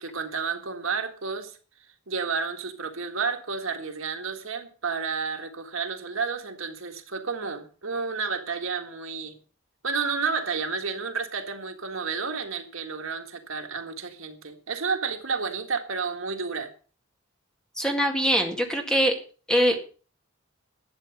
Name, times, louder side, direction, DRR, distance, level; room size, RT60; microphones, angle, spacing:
voice 1, 0.0-1.6 2.1-9.4 9.8-16.7, right 5 dB, 75° right, 6 dB, 1.8 m, -31 dB
voice 2, 17.8-19.1 19.5-19.8, equal, 5° left, 3 dB, 1.9 m, -23 dB
12.0 x 8.2 x 6.4 m, 0.38 s
head